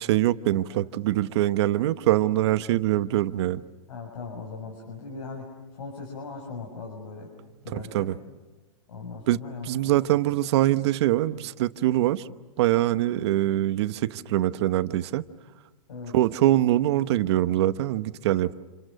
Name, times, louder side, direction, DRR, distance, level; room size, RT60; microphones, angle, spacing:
voice 1, 0.0-3.6 7.7-8.2 9.3-12.2 12.6-15.3 16.1-18.5, right 14 dB, 50° right, 1.0 m, -23 dB
voice 2, 3.9-7.3 7.6-8.1 8.9-9.7 15.9-16.1, left 4 dB, 85° left, 6.5 m, -39 dB
29.5 x 29.0 x 6.5 m
hypercardioid pair, 150°, 17 cm